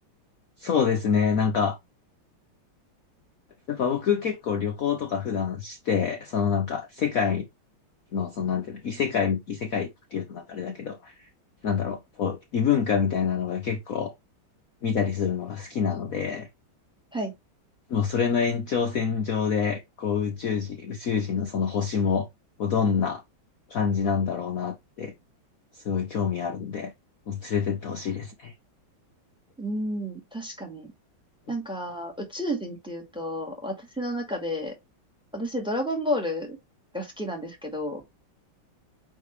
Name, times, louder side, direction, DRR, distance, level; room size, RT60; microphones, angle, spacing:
voice 1, 0.6-1.8 3.7-7.4 8.1-11.1 11.6-14.1 14.8-16.5 17.9-22.3 22.6-23.2 23.7-25.1 25.7-26.9 27.3-28.5, left 6 dB, 55° left, 1.1 m, -26 dB
voice 2, 29.6-30.9 31.5-34.7 35.3-36.6 36.9-38.0, equal, ahead, 1.9 m, -31 dB
9.0 x 3.5 x 3.4 m
omnidirectional pair, 2.2 m